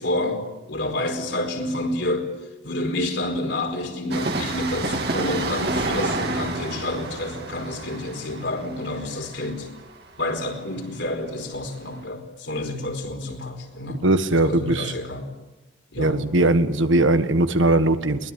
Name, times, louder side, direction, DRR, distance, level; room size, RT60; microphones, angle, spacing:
voice 1, 0.0-2.3 2.6-9.7 10.2-14.0 14.3-15.3 15.9-16.2, left 1 dB, 65° left, 3 dB, 4.6 m, -29 dB
Train, 4.1-11.5 11.8-11.9, right 2 dB, 55° right, 3.1 m, -30 dB
voice 2, 13.9-14.9 16.0-18.3, right 2 dB, 80° right, 10 dB, 1.6 m, -20 dB
22.0 x 20.5 x 9.0 m, 1.1 s
head